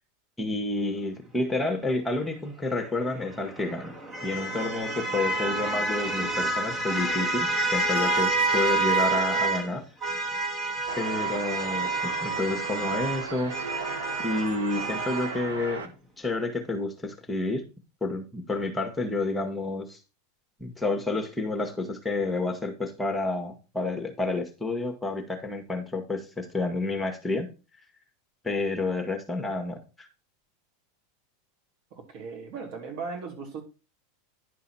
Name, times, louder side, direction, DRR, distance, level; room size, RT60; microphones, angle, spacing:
voice 1, 0.4-3.9 4.2-9.8 11.0-13.9 14.2-17.6 18.0-20.0 20.6-27.5 28.4-30.1, left 2 dB, 10° left, 5 dB, 1.7 m, -30 dB
sound 1, 3.0-9.7 10.0-15.4, right 3 dB, 20° right, 2.2 m, -28 dB
sound 2, 10.9-15.9, right 4 dB, 80° right, 1.4 m, -36 dB
voice 2, 31.9-33.6, right 4 dB, 55° right, 3 dB, 2.9 m, -37 dB
11.0 x 4.7 x 4.4 m, 0.32 s
hypercardioid pair, 90°, 0 cm